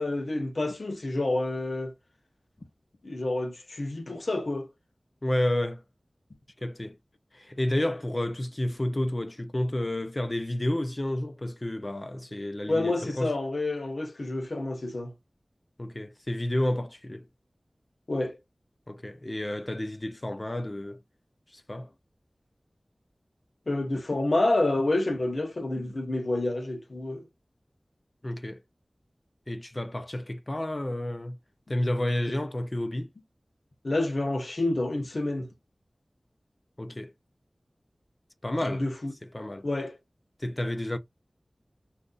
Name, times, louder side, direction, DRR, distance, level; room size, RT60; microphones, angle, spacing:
voice 1, 0.0-1.9 3.0-4.7 12.7-15.1 18.1-18.4 23.7-27.2 33.8-35.5 38.6-39.1 39.6-39.9, left 2 dB, 65° left, 0.8 m, -28 dB
voice 2, 5.2-5.8 6.6-7.0 7.3-13.3 15.8-17.2 18.9-21.0 21.5-21.9 28.2-28.6 29.5-31.4 31.7-33.1 36.8-37.1 38.4-38.8 39.3-39.7 40.4-41.0, left 1 dB, 35° left, 0.6 m, -30 dB
2.6 x 2.5 x 3.7 m
wide cardioid pair, 65°, 0 cm